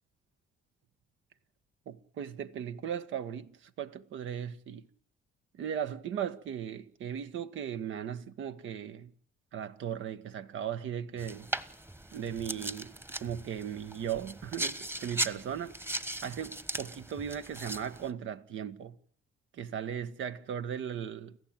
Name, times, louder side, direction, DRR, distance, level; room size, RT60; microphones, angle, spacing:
voice 1, 1.8-4.9 5.5-9.1 9.5-11.5 12.1-12.9 13.2-15.7 16.2-18.9 19.5-21.4, right 8 dB, 75° right, 1.6 m, -37 dB
sound 1, 11.2-18.1, right 1 dB, 10° right, 1.4 m, -38 dB
29.5 x 15.0 x 9.1 m
cardioid pair, 90°, 20 cm